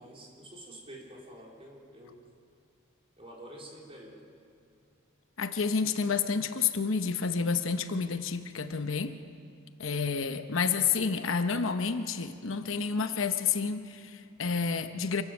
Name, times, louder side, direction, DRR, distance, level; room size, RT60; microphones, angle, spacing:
voice 1, 0.0-2.2 3.2-4.3, right 1 dB, 30° right, -2 dB, 4.0 m, -48 dB
voice 2, 5.4-9.2 9.8-15.2, left 5 dB, 70° left, 9 dB, 0.9 m, -29 dB
27.0 x 12.5 x 7.9 m, 2.5 s
head